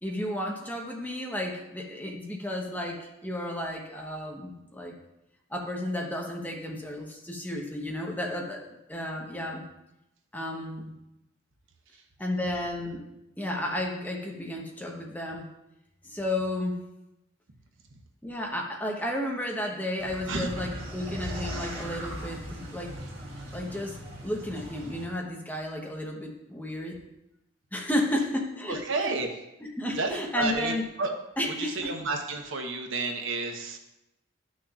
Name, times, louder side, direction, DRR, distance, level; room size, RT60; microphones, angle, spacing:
voice 1, 0.0-4.9 5.5-8.6 8.9-9.6 10.3-10.9 12.2-13.0 13.4-15.5 16.0-16.8 18.2-22.9 23.5-27.0 27.7-29.1 29.6-30.8 31.4-31.9, left 1 dB, 10° left, -1 dB, 0.9 m, -33 dB
sound 1, 20.0-25.1, equal, 50° right, 2.4 m, -38 dB
voice 2, 28.7-29.3 30.0-30.7 31.0-31.1 31.6-33.8, right 3 dB, 70° right, 3 dB, 1.0 m, -30 dB
12.5 x 6.3 x 2.4 m, 0.89 s
head